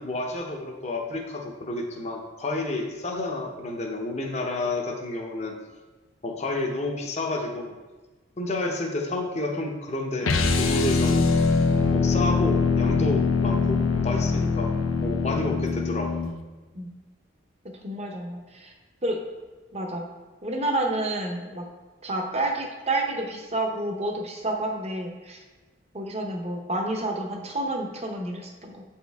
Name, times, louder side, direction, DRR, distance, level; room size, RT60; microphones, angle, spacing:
voice 1, 0.0-5.5 6.2-7.7 8.4-11.3 11.9-14.8 15.0-16.1, left 2 dB, 35° left, 1 dB, 0.8 m, -30 dB
sound 1, 10.2-16.3, left 4 dB, 90° left, 0.6 m, -23 dB
voice 2, 17.8-18.7 19.0-19.2 19.7-20.1 20.4-21.6 22.0-25.4 25.9-28.8, right 1 dB, 30° right, 2 dB, 0.8 m, -29 dB
8.4 x 4.4 x 3.5 m, 1.2 s
head